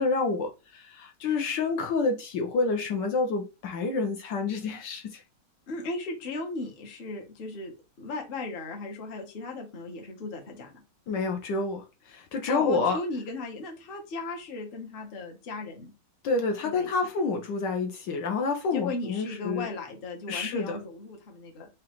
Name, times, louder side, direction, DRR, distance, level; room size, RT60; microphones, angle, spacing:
voice 1, 0.0-5.2 11.1-13.0 16.2-19.7 20.3-20.8, left 4 dB, 70° left, 1.2 m, -28 dB
voice 2, 5.7-7.7 8.0-10.8 12.5-15.9 16.6-16.9 18.7-21.7, left 3 dB, 45° left, 0.8 m, -36 dB
5.0 x 2.4 x 2.9 m
omnidirectional pair, 2.2 m